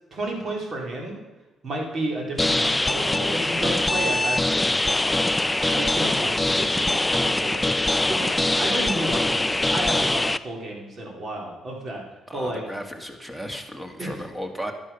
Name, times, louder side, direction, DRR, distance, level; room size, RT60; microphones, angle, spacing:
voice 1, 0.1-1.2 1.6-4.8 5.6-12.0 12.3-12.6 14.0-14.2, right 1 dB, 50° right, 0 dB, 3.7 m, -32 dB
sound 1, 2.4-10.4, left 2 dB, 10° left, 0.5 m, -23 dB
voice 2, 12.3-14.7, equal, 5° right, 5 dB, 2.0 m, -35 dB
12.0 x 11.5 x 5.6 m, 1.2 s
cardioid pair, 90°, 0 cm